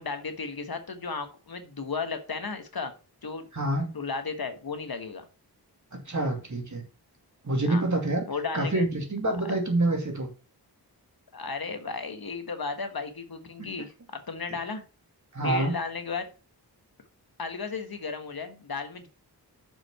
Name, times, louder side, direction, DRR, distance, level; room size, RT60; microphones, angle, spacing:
voice 1, 0.0-2.9 3.2-3.5 3.9-5.2 7.7-7.8 8.3-8.9 9.4-9.5 11.3-14.8 15.4-16.3 17.4-19.1, left 4 dB, 60° left, 7 dB, 1.5 m, -34 dB
voice 2, 3.5-3.9 5.9-6.8 7.4-8.2 8.5-10.3 15.3-15.8, right 2 dB, 45° right, 2 dB, 2.6 m, -27 dB
6.7 x 6.2 x 5.6 m, 0.33 s
wide cardioid pair, 90°, 40 cm